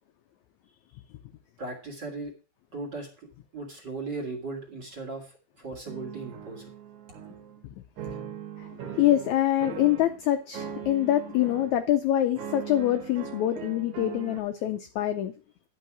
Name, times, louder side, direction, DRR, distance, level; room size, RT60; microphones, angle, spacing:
voice 1, 1.6-2.3 2.7-3.3 3.5-6.7, right 3 dB, 35° right, 1 dB, 2.6 m, -37 dB
sound 1, 5.9-7.6 8.0-10.2 10.5-11.8 12.4-14.4, right 8 dB, 60° right, 2.9 m, -40 dB
voice 2, 8.6-15.3, left 12 dB, 80° left, 8 dB, 1.7 m, -25 dB
11.5 x 5.6 x 6.0 m, 0.36 s
omnidirectional pair, 4.1 m